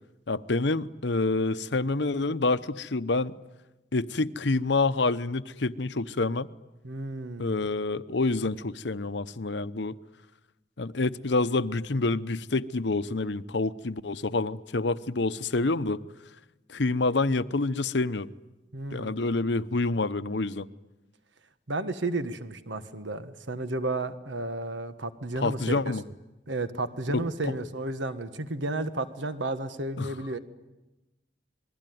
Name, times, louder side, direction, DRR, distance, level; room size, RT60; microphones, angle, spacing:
voice 1, 0.3-3.3 3.9-6.5 7.4-10.0 10.8-16.0 16.7-18.3 18.9-20.7 25.4-26.0 27.1-27.2 30.0-30.1, left 3 dB, 70° left, 13 dB, 0.9 m, -27 dB
voice 2, 6.8-7.7 18.7-19.2 21.7-25.9 26.5-30.4, right 2 dB, 85° right, 10 dB, 1.4 m, -32 dB
27.5 x 21.5 x 9.4 m, 1.0 s
head